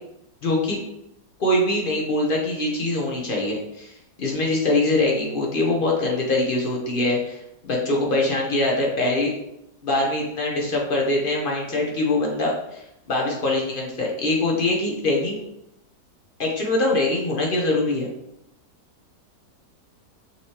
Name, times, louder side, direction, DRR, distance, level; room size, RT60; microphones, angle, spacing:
voice 1, 0.4-0.8 1.4-9.3 9.8-15.4 16.4-18.1, left 2 dB, 45° left, -2 dB, 0.7 m, -23 dB
5.5 x 3.2 x 2.9 m, 0.83 s
omnidirectional pair, 1.8 m